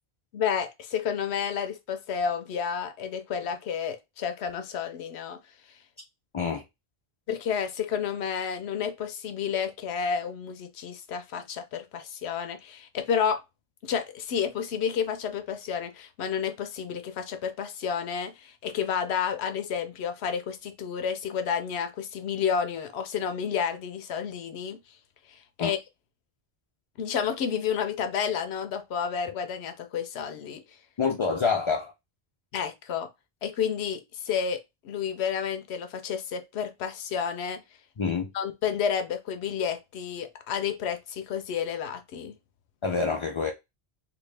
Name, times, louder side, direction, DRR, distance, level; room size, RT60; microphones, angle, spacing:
voice 1, 0.3-5.4 7.3-13.4 13.8-24.8 25.3-25.8 27.0-30.6 32.5-33.1 33.4-37.6 38.3-42.4, left 7 dB, 90° left, 0.9 m, -30 dB
voice 2, 31.0-31.9 38.0-38.3 42.8-43.5, left 5 dB, 50° left, 0.3 m, -27 dB
3.4 x 2.5 x 3.2 m
omnidirectional pair, 1.1 m